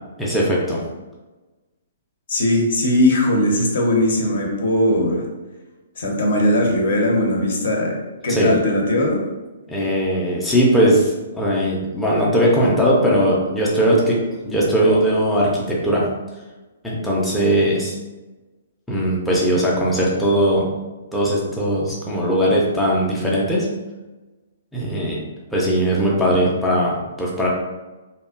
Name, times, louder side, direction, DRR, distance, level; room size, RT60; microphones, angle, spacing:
voice 1, 0.2-0.8 8.3-8.5 9.7-14.2 14.4-16.0 16.8-18.0 18.9-20.7 21.1-23.7 24.7-25.2 25.5-27.5, equal, 5° left, -6 dB, 0.4 m, -19 dB
voice 2, 2.3-5.2 6.0-8.0 8.2-9.2, left 1 dB, 55° left, 0 dB, 0.6 m, -19 dB
2.5 x 2.1 x 2.3 m, 1.2 s
figure-of-eight pair, 120°, 0 cm